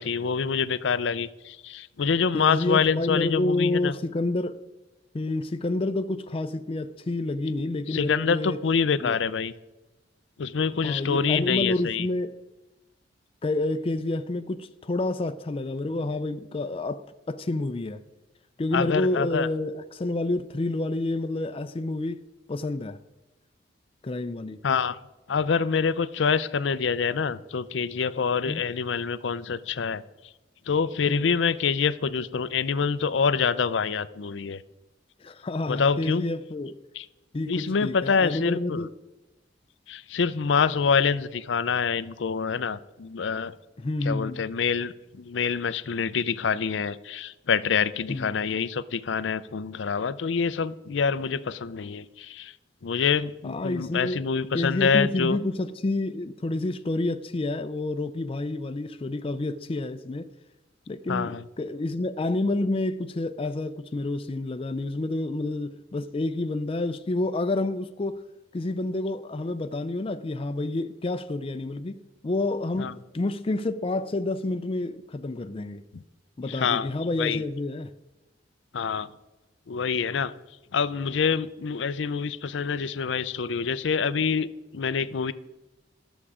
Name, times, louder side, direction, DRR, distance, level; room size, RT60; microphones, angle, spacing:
voice 1, 0.0-3.9 7.9-9.5 10.4-12.1 18.7-19.5 24.6-25.0 25.3-30.0 30.7-34.6 35.7-36.2 37.0-37.1 37.5-38.9 39.9-43.5 44.0-52.5 52.8-55.4 61.1-61.4 72.8-72.9 76.5-76.9 77.2-77.4 78.7-79.1 79.7-80.3 80.7-85.3, left 6 dB, 85° left, 0.5 m, -26 dB
voice 2, 2.3-4.6 5.1-8.6 9.0-9.2 10.8-12.3 13.4-18.0 18.6-22.2 22.5-23.0 24.0-24.6 28.5-28.6 31.1-31.3 35.2-36.7 37.3-38.9 43.8-44.5 48.1-48.3 53.4-54.3 54.5-60.3 60.9-68.2 68.5-75.8 76.4-77.9, left 2 dB, 30° left, 0.4 m, -29 dB
12.0 x 7.1 x 4.9 m
head